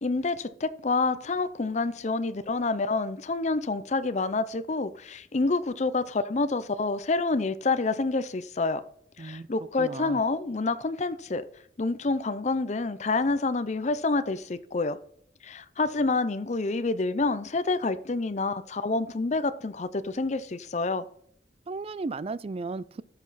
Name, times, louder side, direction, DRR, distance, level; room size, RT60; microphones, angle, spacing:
voice 1, 0.0-8.8 9.2-11.4 11.8-15.0 15.4-21.0, left 3 dB, 40° left, 0.6 m, -28 dB
voice 2, 9.8-10.2 21.7-23.0, right 3 dB, 35° right, 0.4 m, -35 dB
13.0 x 5.9 x 4.1 m
head